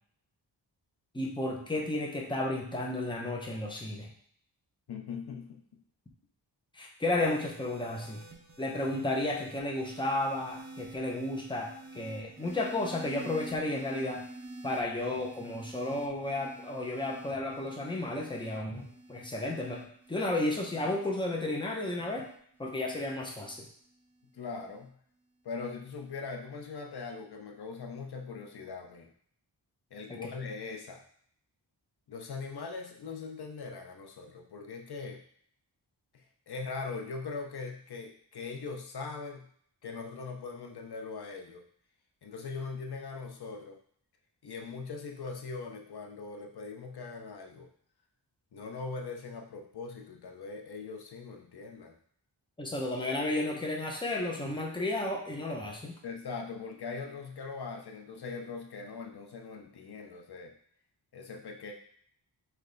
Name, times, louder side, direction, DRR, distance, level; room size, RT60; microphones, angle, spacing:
voice 1, 1.1-4.1 6.8-8.2 8.6-14.2 14.6-22.3 22.6-23.7 30.1-30.3 52.6-56.0, left 2 dB, 10° left, -1 dB, 0.7 m, -33 dB
voice 2, 4.9-5.6 24.3-25.0 25.4-29.1 29.9-31.0 32.1-35.2 36.1-39.5 39.8-41.6 42.2-43.8 44.4-47.7 48.5-51.9 56.0-60.5 61.1-61.7, left 4 dB, 60° left, 2 dB, 0.7 m, -41 dB
sound 1, 7.1-23.6 24.5-24.9, right 2 dB, 40° right, 0.8 m, -49 dB
3.4 x 3.2 x 3.8 m, 0.62 s
wide cardioid pair, 110°, 44 cm